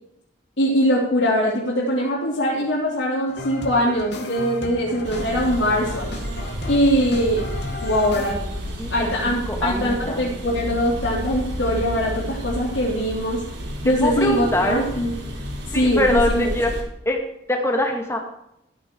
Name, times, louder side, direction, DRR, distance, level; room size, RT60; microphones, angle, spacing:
voice 1, 0.6-6.1 6.7-7.4 7.8-8.4 8.9-13.4 13.8-15.1 15.7-16.5, equal, 85° left, -6 dB, 3.5 m, -22 dB
sound 1, 3.3-8.3, left 2 dB, 60° left, 2.3 m, -34 dB
sound 2, 5.0-16.8, equal, 75° right, 4.8 m, -31 dB
voice 2, 8.8-10.2 13.9-14.9 15.7-16.7 17.1-17.2 17.5-18.2, left 1 dB, 15° left, 2 dB, 2.2 m, -23 dB
14.5 x 9.5 x 4.9 m, 0.80 s
head